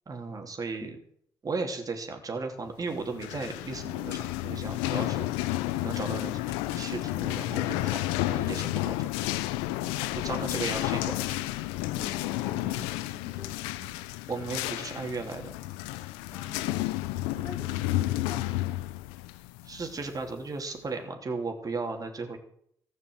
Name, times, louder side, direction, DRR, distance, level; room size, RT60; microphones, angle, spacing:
voice 1, 0.1-0.9 1.4-5.3 5.8-6.4 6.7-8.0 8.3-9.0 10.1-11.4 14.3-15.5 17.3-17.5 19.6-22.4, right 3 dB, 40° right, 4 dB, 3.1 m, -35 dB
sound 1, 3.0-20.4, left 17 dB, 85° left, 0.5 m, -31 dB
voice 2, 10.0-10.5 11.9-14.2 16.3-18.9, left 2 dB, 30° left, -6 dB, 2.9 m, -47 dB
15.5 x 6.6 x 7.9 m, 0.69 s
hypercardioid pair, 50°, 9 cm